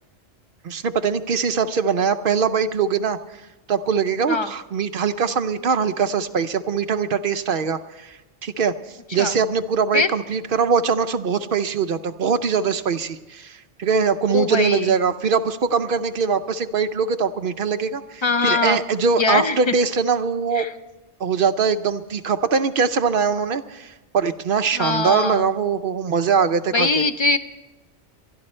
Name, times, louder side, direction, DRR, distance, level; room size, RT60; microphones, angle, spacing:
voice 1, 0.6-3.2 3.7-8.7 9.1-20.7 21.2-27.0, right 6 dB, 55° right, 10 dB, 0.8 m, -22 dB
voice 2, 14.3-14.9 18.2-18.8 19.2-19.7 20.5-20.7 24.7-25.5 26.7-27.4, left 3 dB, 35° left, 9 dB, 0.5 m, -22 dB
23.0 x 12.0 x 4.4 m, 1.1 s
omnidirectional pair, 1.2 m